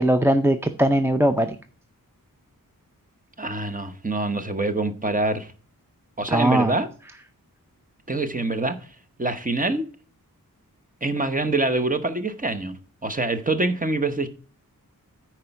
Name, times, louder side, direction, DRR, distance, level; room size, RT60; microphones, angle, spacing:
voice 1, 0.0-1.6 6.3-6.8, right 1 dB, 5° right, 0.5 m, -20 dB
voice 2, 3.4-5.5 6.2-6.9 8.1-8.9 9.2-9.9 11.0-14.3, right 2 dB, 25° right, 0.9 m, -25 dB
9.4 x 4.5 x 5.8 m
wide cardioid pair, 85°, 35 cm